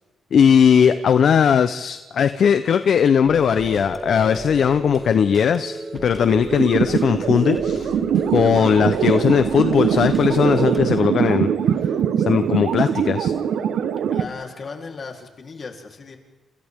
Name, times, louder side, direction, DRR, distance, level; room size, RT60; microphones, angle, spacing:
voice 1, 0.3-7.9 8.3-11.5 12.3-13.3, left 7 dB, 65° left, 10 dB, 0.8 m, -18 dB
sound 1, 3.2-10.9, right 2 dB, 20° right, 2.9 m, -33 dB
sound 2, 6.3-14.2, right 8 dB, 80° right, 1.1 m, -22 dB
voice 2, 14.1-16.2, left 4 dB, 45° left, 1 dB, 3.6 m, -36 dB
29.5 x 28.0 x 3.7 m, 1.2 s
cardioid pair, 90°, 0 cm